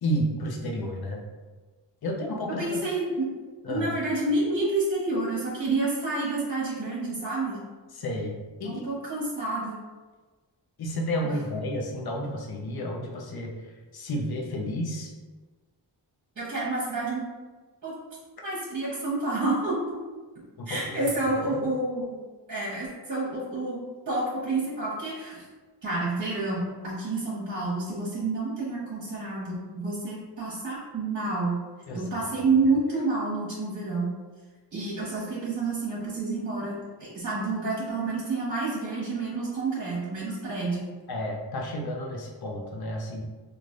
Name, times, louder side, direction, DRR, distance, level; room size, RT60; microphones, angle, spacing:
voice 1, 0.0-1.2 2.0-2.8 3.6-3.9 7.9-8.8 10.8-13.5 13.9-15.1 20.6-21.1 21.6-21.7 31.9-32.0 41.1-43.2, equal, 55° left, 0 dB, 0.7 m, -31 dB
voice 2, 2.6-3.2 3.7-7.6 8.6-9.8 11.3-11.4 16.4-17.2 17.8-17.9 18.4-19.9 20.7-22.2 22.5-23.8 24.1-25.5 25.8-31.6 31.9-34.1 34.7-40.8, right 3 dB, 40° right, -7 dB, 1.1 m, -29 dB
3.2 x 2.4 x 2.5 m, 1.3 s
cardioid pair, 40°, 46 cm